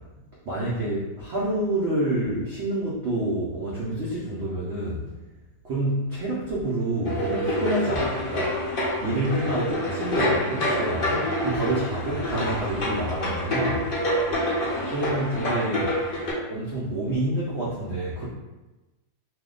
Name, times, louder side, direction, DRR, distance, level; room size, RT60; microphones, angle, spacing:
voice 1, 0.4-5.1 5.6-8.6 9.0-13.9 14.9-16.0 16.5-18.3, right 1 dB, 75° right, -6 dB, 0.6 m, -28 dB
sound 1, 7.0-16.3, left 1 dB, 50° left, 0.6 m, -27 dB
2.7 x 2.1 x 3.7 m, 1.1 s
omnidirectional pair, 1.8 m